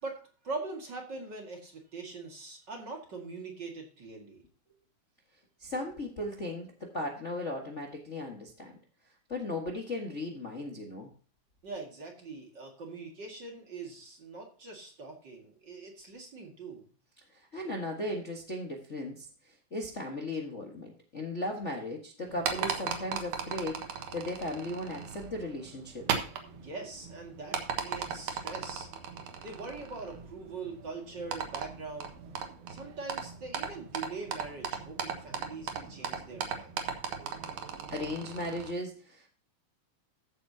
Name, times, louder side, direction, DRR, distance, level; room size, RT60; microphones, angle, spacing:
voice 1, 0.0-4.4 11.6-16.9 26.5-28.9 29.4-32.1 32.7-36.8, right 3 dB, 40° right, 1 dB, 2.5 m, -42 dB
voice 2, 5.6-8.7 9.3-11.1 17.5-19.3 19.7-26.1 37.9-39.3, left 1 dB, 30° left, 0 dB, 1.4 m, -36 dB
sound 1, 22.2-38.7, right 7 dB, 85° right, 2.8 m, -38 dB
14.5 x 8.4 x 2.8 m, 0.39 s
omnidirectional pair, 3.4 m